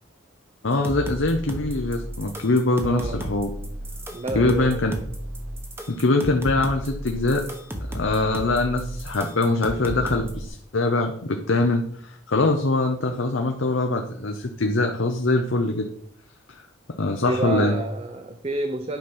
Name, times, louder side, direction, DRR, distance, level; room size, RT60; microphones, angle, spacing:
voice 1, 0.6-3.5 4.3-5.0 5.9-7.5 7.9-15.9 17.0-17.8, left 2 dB, 70° left, 4 dB, 0.8 m, -23 dB
sound 1, 0.7-10.5, right 1 dB, 10° right, 1.1 m, -34 dB
voice 2, 2.8-3.2 4.1-4.8 17.2-19.0, right 2 dB, 30° right, 8 dB, 0.5 m, -29 dB
9.3 x 5.8 x 5.6 m, 0.66 s
head